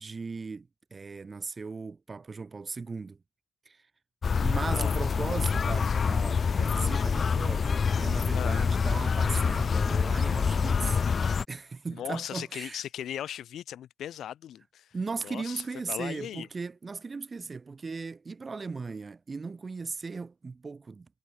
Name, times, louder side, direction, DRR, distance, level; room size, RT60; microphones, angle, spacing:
voice 1, 0.0-3.2 3.7-3.8 4.4-11.0 11.5-12.8 14.9-21.1, right 4 dB, 30° right, 7.7 m, -37 dB
sound 1, 4.2-11.5, left 5 dB, 40° left, 1.4 m, -26 dB
voice 2, 8.3-8.6 12.0-14.9 15.2-16.5, left 10 dB, 80° left, 3.0 m, -38 dB
cardioid pair, 120°, 0 cm